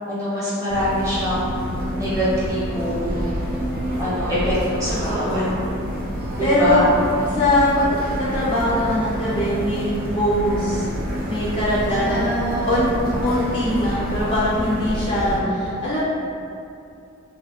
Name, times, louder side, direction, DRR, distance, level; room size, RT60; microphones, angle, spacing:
voice 1, 0.1-1.6 1.9-3.3 4.0-5.5 6.4-6.9 10.5-10.7 11.8-12.8 15.2-15.5, equal, 15° right, -10 dB, 0.8 m, -25 dB
sound 1, 0.7-15.4, equal, 45° right, 0.4 m, -27 dB
voice 2, 5.1-5.7 6.4-6.9 7.3-7.9 8.2-10.9 11.3-12.9 13.2-16.0, left 1 dB, 25° left, -9 dB, 0.4 m, -22 dB
2.3 x 2.1 x 3.4 m, 2.6 s
head